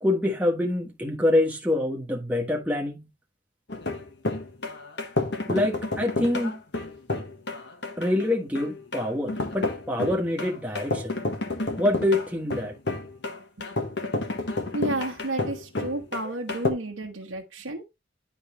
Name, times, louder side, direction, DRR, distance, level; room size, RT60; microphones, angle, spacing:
voice 1, 0.0-3.1 5.5-6.6 8.0-11.2 11.8-12.8, left 1 dB, 10° right, 1.3 m, -25 dB
sound 1, 3.7-16.7, left 2 dB, 60° left, 1.4 m, -30 dB
voice 2, 14.7-17.8, right 2 dB, 85° right, 1.3 m, -31 dB
11.0 x 4.0 x 3.1 m
head